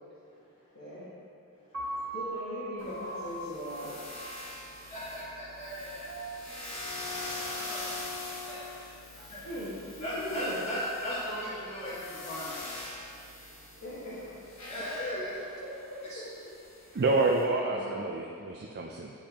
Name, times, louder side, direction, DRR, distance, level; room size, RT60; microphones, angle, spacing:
voice 1, 0.7-1.1 2.1-3.9 9.4-10.6 13.8-14.4 14.8-15.2 16.1-16.2 16.8-17.0 17.7-18.1, equal, 85° left, -12 dB, 1.6 m, -39 dB
voice 2, 1.6-2.0 4.4-6.3 7.4-7.9 8.2-8.6 9.2-9.4 10.0-12.6 14.7-15.3, equal, 30° left, -12 dB, 1.2 m, -38 dB
Piano, 1.7-7.9, right 2 dB, 70° right, 1.6 m, -42 dB
sound 1, 2.8-17.4, left 2 dB, 60° left, 1.6 m, -43 dB
voice 3, 16.9-19.1, right 2 dB, 45° right, 0 dB, 0.4 m, -28 dB
8.7 x 5.0 x 2.9 m, 2.4 s
head